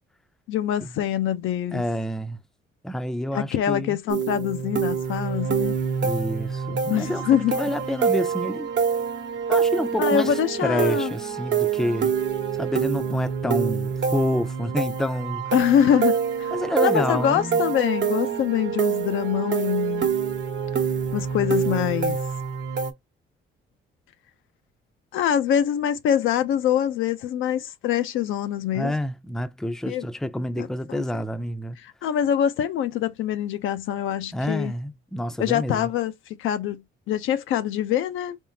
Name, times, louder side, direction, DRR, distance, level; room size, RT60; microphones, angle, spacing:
voice 1, 0.5-1.8 3.3-5.7 6.9-7.6 10.0-11.1 15.5-16.5 16.8-20.1 21.1-22.2 25.1-29.0 29.9-30.1 30.6-31.0 32.0-34.7 35.4-36.1 36.4-36.8 37.1-38.4, left 10 dB, 80° left, 0.6 m, -24 dB
voice 2, 1.7-2.4 2.8-4.0 6.0-8.7 9.5-12.1 12.5-15.5 16.5-17.7 28.7-31.8 34.3-35.9, left 1 dB, ahead, 0.5 m, -28 dB
sound 1, 4.1-22.9, right 7 dB, 65° right, 1.0 m, -26 dB
3.7 x 3.7 x 2.7 m
cardioid pair, 90°, 20 cm